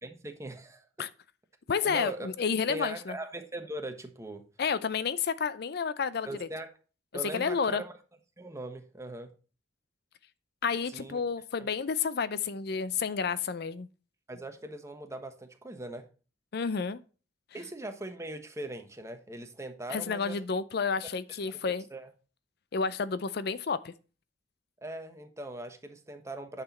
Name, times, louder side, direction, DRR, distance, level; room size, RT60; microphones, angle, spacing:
voice 1, 0.0-0.8 1.8-2.3 2.7-4.4 6.3-6.7 7.1-7.9 8.4-9.3 10.9-11.2 11.6-11.7 14.3-16.1 17.5-20.4 20.9-21.0 21.5-22.1 24.8-26.6, right 1 dB, 15° right, 1.2 m, -40 dB
voice 2, 1.7-3.1 4.6-6.3 7.3-7.8 10.6-13.9 16.5-17.0 19.9-21.8 22.7-23.9, left 5 dB, 60° left, 0.5 m, -30 dB
9.7 x 6.0 x 4.1 m
head